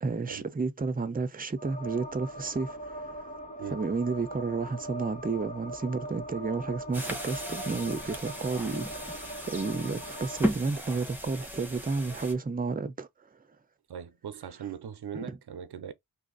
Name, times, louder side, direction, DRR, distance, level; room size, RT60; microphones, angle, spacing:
voice 1, 0.0-3.2 3.7-13.1 15.1-15.3, right 4 dB, 25° right, 0.5 m, -32 dB
sound 1, 1.6-10.5, right 1 dB, 15° left, 1.3 m, -41 dB
sound 2, 6.9-12.3, equal, 5° right, 0.9 m, -36 dB
voice 2, 13.9-15.9, right 8 dB, 80° right, 0.5 m, -40 dB
2.7 x 2.5 x 3.8 m
wide cardioid pair, 85°, 39 cm